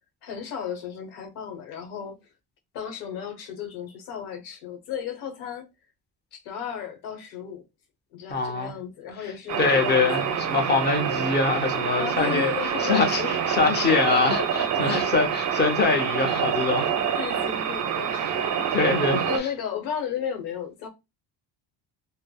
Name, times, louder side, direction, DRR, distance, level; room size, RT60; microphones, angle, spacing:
voice 1, 0.2-2.2 2.7-5.7 6.3-7.6 8.1-10.4 12.0-13.4 13.8-15.1 17.1-18.4 19.2-20.9, left 8 dB, 85° left, 1.1 m, -34 dB
voice 2, 8.3-8.8 9.6-12.5 12.8-13.2 13.5-16.9 18.2-18.3 18.7-19.5, left 4 dB, 25° left, 0.7 m, -24 dB
sound 1, 9.5-19.4, right 8 dB, 45° right, 0.5 m, -26 dB
3.2 x 2.0 x 2.2 m
cardioid pair, 130°, 40 cm